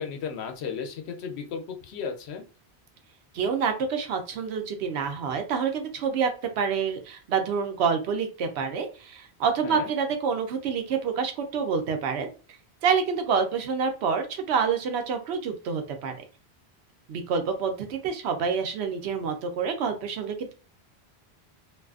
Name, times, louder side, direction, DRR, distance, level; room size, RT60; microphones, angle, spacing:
voice 1, 0.0-2.4 9.6-9.9, left 6 dB, 90° left, 4 dB, 0.9 m, -34 dB
voice 2, 3.3-6.3 6.6-12.3 12.8-16.2 17.1-20.5, right 6 dB, 80° right, 6 dB, 0.9 m, -27 dB
2.5 x 2.4 x 2.3 m, 0.34 s
omnidirectional pair, 1.1 m